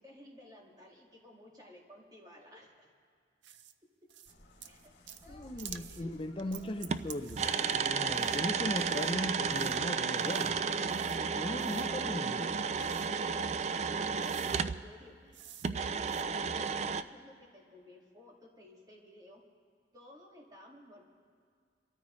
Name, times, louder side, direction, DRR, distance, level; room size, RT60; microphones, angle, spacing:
voice 1, 0.0-2.9 4.7-4.9 5.2-7.0 13.6-19.4 19.9-21.0, left 1 dB, 20° right, -2 dB, 2.1 m, -55 dB
sound 1, 3.4-3.7 4.1-4.3 4.6-5.3 5.6-6.0 6.5-7.8 8.1-8.4 8.8-9.1 9.5-9.8 10.2-10.5 10.9-11.2 11.6-11.9 12.8-13.1 13.8-13.9 14.2-14.6 15.3-15.7 16.0-16.2, right 10 dB, 85° right, 0.6 m, -50 dB
sound 2, 4.2-13.1, left 1 dB, 70° left, 2.3 m, -59 dB
voice 2, 5.3-7.4 7.7-10.6 11.2-12.5, left 1 dB, 30° left, 8 dB, 0.6 m, -38 dB
sound 3, 6.4-6.5 6.9-14.8 15.6-17.0, right 5 dB, 40° right, 0.3 m, -32 dB
26.0 x 13.5 x 3.2 m, 2.1 s
head